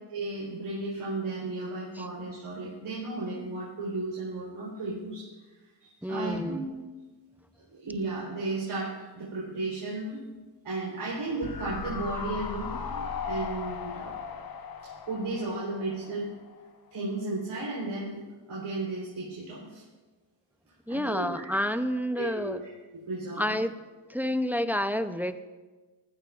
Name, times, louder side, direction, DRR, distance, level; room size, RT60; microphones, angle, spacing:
voice 1, 0.1-5.3 5.8-6.6 7.7-10.2 10.6-14.2 15.1-16.3 16.9-18.2 18.5-19.8 20.9-21.5 22.2-23.6, right 2 dB, 75° right, -7 dB, 3.9 m, -34 dB
voice 2, 6.0-6.6 20.9-22.6 23.4-23.7 24.1-25.4, equal, 5° right, 10 dB, 0.6 m, -29 dB
sound 1, 11.4-16.7 16.9-17.0, left 6 dB, 45° left, 0.9 m, -37 dB
19.5 x 14.5 x 2.5 m, 1.3 s
cardioid pair, 70°, 49 cm